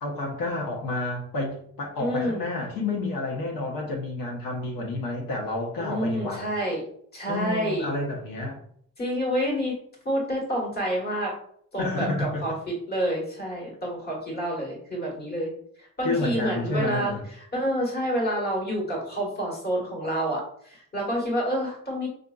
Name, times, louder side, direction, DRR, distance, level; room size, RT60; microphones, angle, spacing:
voice 1, 0.0-6.5 7.3-8.6 11.8-12.4 16.0-17.2, left 2 dB, 85° left, 0 dB, 0.9 m, -30 dB
voice 2, 2.0-2.5 5.8-6.8 7.1-7.9 9.0-9.8 10.0-11.3 11.7-15.5 15.8-17.2 17.5-22.1, equal, 30° left, -2 dB, 1.3 m, -28 dB
5.1 x 2.4 x 2.3 m, 0.63 s
cardioid pair, 150°, 34 cm